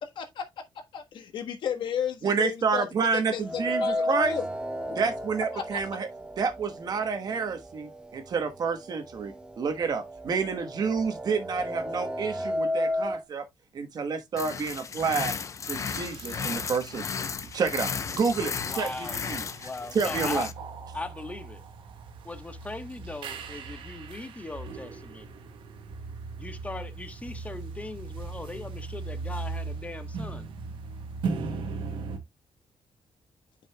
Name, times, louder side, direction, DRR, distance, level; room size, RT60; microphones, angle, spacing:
voice 1, 0.0-4.5 5.5-5.8, left 8 dB, 70° left, 1.3 m, -34 dB
voice 2, 2.2-4.4 4.9-6.1 6.4-13.5 13.7-15.3 15.6-17.0 17.5-18.9 19.3-19.4 19.9-20.5, right 5 dB, 50° right, 1.2 m, -29 dB
sound 1, 3.4-7.5 7.8-7.9 8.9-9.0 9.4-13.2, left 1 dB, 10° right, 0.7 m, -32 dB
sound 2, 14.4-20.5, left 6 dB, 40° left, 0.6 m, -34 dB
sound 3, 15.8-32.2, right 4 dB, 80° right, 1.1 m, -39 dB
voice 3, 18.6-19.2 19.6-20.5 20.9-21.6 22.2-25.3 26.4-30.5, left 2 dB, 15° left, 1.1 m, -39 dB
9.6 x 5.4 x 2.2 m
cardioid pair, 110°, 8 cm